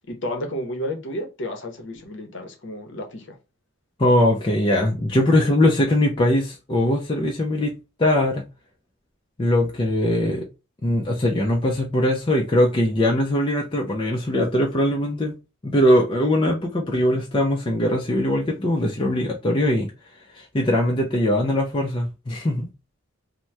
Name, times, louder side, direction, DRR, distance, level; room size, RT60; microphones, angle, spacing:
voice 1, 0.1-3.4, left 1 dB, 55° left, 0.8 m, -31 dB
voice 2, 4.0-7.7 8.0-8.5 9.4-10.5 10.8-15.3 15.6-19.9 20.3-22.7, left 1 dB, 25° left, 0.4 m, -21 dB
2.9 x 2.1 x 3.2 m
head